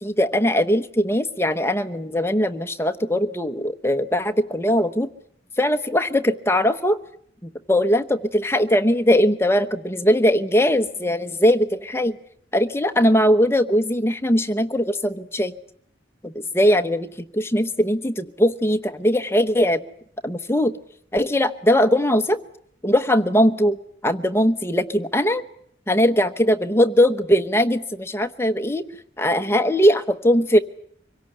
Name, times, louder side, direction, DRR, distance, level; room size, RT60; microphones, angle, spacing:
voice 1, 0.0-5.1 5.6-7.0 7.4-12.2 12.5-15.5 16.2-17.1 17.3-19.8 20.2-20.7 21.1-22.4 22.8-23.8 24.0-25.4 25.9-28.8 29.2-30.6, equal, 15° left, 8 dB, 1.0 m, -20 dB
25.5 x 17.5 x 9.9 m, 0.66 s
head